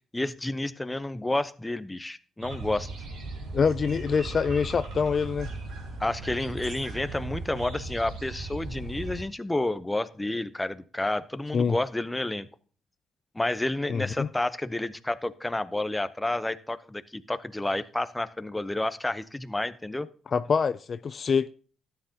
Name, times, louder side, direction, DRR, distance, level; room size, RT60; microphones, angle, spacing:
voice 1, 0.1-2.9 6.0-12.5 13.3-20.1, left 2 dB, 10° left, 0.8 m, -30 dB
sound 1, 2.4-9.2, right 3 dB, 75° right, 4.0 m, -37 dB
voice 2, 3.5-5.5 11.5-11.8 13.9-14.3 20.3-21.5, left 6 dB, 45° left, 0.4 m, -25 dB
13.0 x 9.1 x 2.8 m
cardioid pair, 90°, 0 cm